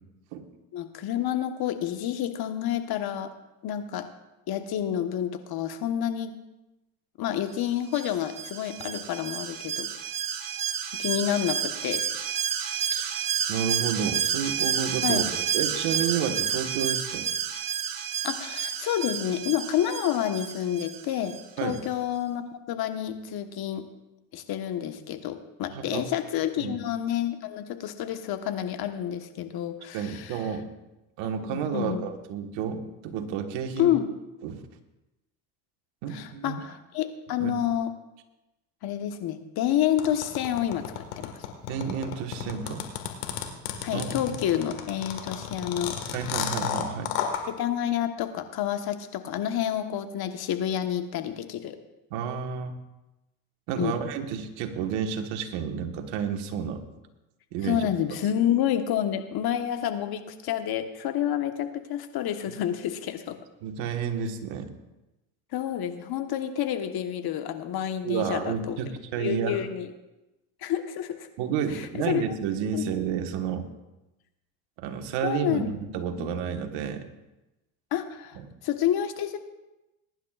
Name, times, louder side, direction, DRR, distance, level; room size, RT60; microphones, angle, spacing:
voice 1, 0.7-3.3 3.6-4.1 4.5-6.3 7.2-9.9 10.9-12.0 15.0-15.4 18.2-21.3 21.6-23.9 24.3-30.4 31.4-32.0 33.8-34.1 36.1-37.9 38.8-41.3 43.8-46.1 47.5-51.8 53.8-54.0 57.6-63.4 65.5-68.8 69.2-69.9 70.6-71.3 71.7-72.2 72.7-72.8 75.2-75.7 76.2-76.3 77.9-79.4, left 10 dB, 55° left, 7 dB, 1.3 m, -29 dB
Alarm, 7.9-21.4 21.7-21.8, right 8 dB, 45° right, 1.4 m, -30 dB
voice 2, 12.7-13.2 13.5-17.3 21.6-21.8 25.7-26.1 26.6-26.8 29.9-30.7 31.2-33.9 34.4-34.6 36.0-36.6 37.4-37.5 41.7-42.9 43.9-44.4 46.1-47.1 52.1-52.8 53.7-56.8 57.5-57.9 63.6-64.7 68.0-69.6 71.4-73.7 74.8-77.0 78.4-78.5, right 7 dB, 70° right, 5 dB, 1.6 m, -31 dB
sound 1, 40.0-47.4, left 10 dB, 85° left, 1.8 m, -32 dB
21.5 x 10.5 x 2.5 m, 0.97 s
supercardioid pair, 85°, 45 cm